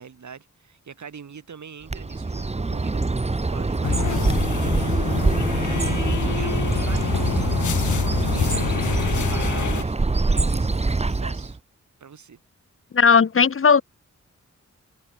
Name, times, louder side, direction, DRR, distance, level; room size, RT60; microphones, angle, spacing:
voice 1, 0.0-11.6 12.0-12.4, right 6 dB, 75° right, 5.5 m, -43 dB
Bird, 1.9-11.6, right 3 dB, 20° right, 1.1 m, -24 dB
sound 1, 3.8-9.8, left 8 dB, 80° left, 2.0 m, -26 dB
voice 2, 12.9-13.8, left 6 dB, 45° left, 1.0 m, -16 dB
wide cardioid pair, 100°, 30 cm